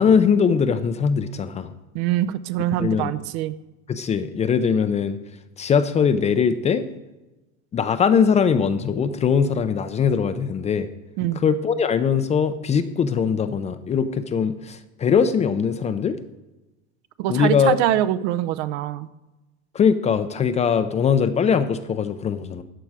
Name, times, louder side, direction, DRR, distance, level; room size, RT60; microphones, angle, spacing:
voice 1, 0.0-1.7 2.8-3.1 3.9-5.2 5.6-6.8 7.7-10.9 11.4-16.2 17.3-17.8 19.7-22.6, left 6 dB, 20° left, 11 dB, 0.5 m, -21 dB
voice 2, 1.9-3.5 11.2-11.4 17.2-19.1, right 13 dB, 65° right, 13 dB, 0.7 m, -24 dB
14.0 x 9.1 x 4.8 m, 1.1 s
supercardioid pair, 135°, 35 cm